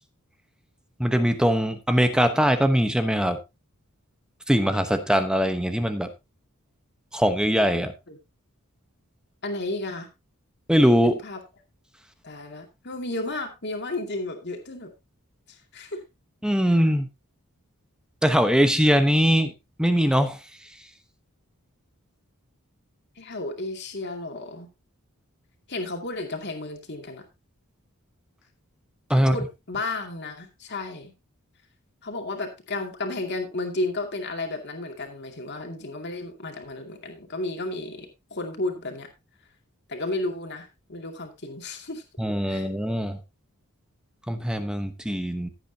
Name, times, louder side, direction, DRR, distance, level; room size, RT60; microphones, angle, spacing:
voice 1, 1.0-3.4 4.5-6.1 7.1-7.9 10.7-11.2 16.4-17.1 18.2-19.5 19.8-20.4 29.1-29.4 42.2-43.2 44.3-45.5, equal, 5° right, 8 dB, 1.0 m, -21 dB
voice 2, 9.4-10.1 11.2-11.4 12.2-14.9 15.5-16.0 23.2-24.7 25.7-27.2 29.2-31.1 32.0-39.1 39.9-42.0 42.5-42.7, left 2 dB, 50° left, 4 dB, 2.4 m, -33 dB
15.5 x 8.5 x 2.8 m, 0.24 s
head